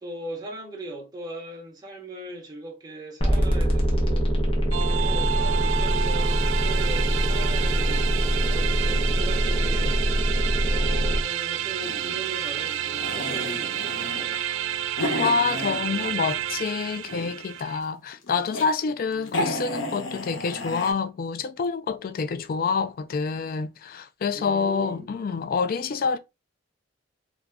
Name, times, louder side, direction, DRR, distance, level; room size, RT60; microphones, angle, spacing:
voice 1, 0.0-4.3 5.0-10.1 10.7-14.4 19.1-19.5 24.3-25.1, right 1 dB, 20° right, 0.9 m, -39 dB
sound 1, 3.2-11.2, equal, 30° left, 0.8 m, -23 dB
sound 2, 4.7-17.8, right 11 dB, 80° right, 0.3 m, -30 dB
sound 3, 11.8-16.4 16.8-17.6 18.1-18.7 19.0-19.1 19.3-20.9, left 1 dB, 80° left, 0.8 m, -33 dB
voice 2, 15.2-26.2, left 5 dB, 45° left, 0.3 m, -27 dB
2.7 x 2.3 x 3.4 m
head